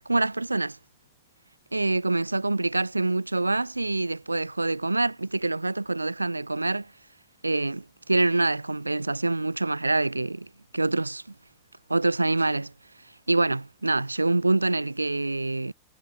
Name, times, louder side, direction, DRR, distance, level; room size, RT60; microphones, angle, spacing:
voice 1, 0.1-0.8 1.7-6.9 7.4-10.5 10.7-11.2 11.9-12.7 13.3-15.7, right 2 dB, 85° right, 4.1 m, -25 dB
figure-of-eight pair, 90°, 0 cm